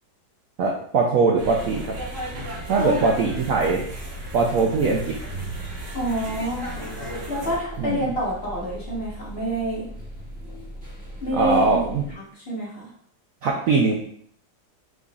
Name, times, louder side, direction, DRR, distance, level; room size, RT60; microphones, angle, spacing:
voice 1, 0.6-1.9 2.7-3.8 4.3-5.1 7.8-8.0 11.3-12.0 13.4-13.9, right 4 dB, 70° right, 0 dB, 0.8 m, -21 dB
sound 1, 1.4-12.1, right 1 dB, 5° right, 1.4 m, -39 dB
sound 2, 1.4-7.6, right 1 dB, 45° right, 1.7 m, -36 dB
voice 2, 5.9-6.7 7.3-9.9 11.2-11.8 12.4-12.9, right 1 dB, 35° left, -6 dB, 1.3 m, -27 dB
5.2 x 3.8 x 2.4 m, 0.64 s
omnidirectional pair, 2.0 m